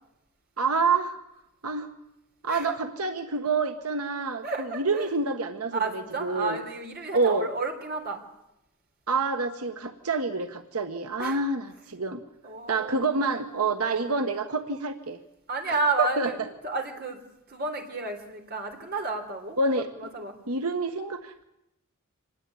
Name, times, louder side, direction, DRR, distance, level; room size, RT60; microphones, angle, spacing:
voice 1, 0.6-1.2 1.6-1.9 2.4-6.6 7.1-7.5 9.1-12.2 12.7-15.2 15.7-16.5 19.6-19.9 20.5-21.4, right 3 dB, 85° right, 6 dB, 1.4 m, -27 dB
voice 2, 4.4-5.1 5.7-8.2 11.2-11.4 12.4-13.2 13.8-14.1 15.5-16.4 16.6-17.2 17.5-19.6 20.0-20.4, right 3 dB, 45° right, 4 dB, 3.9 m, -31 dB
25.5 x 18.5 x 9.8 m, 0.89 s
head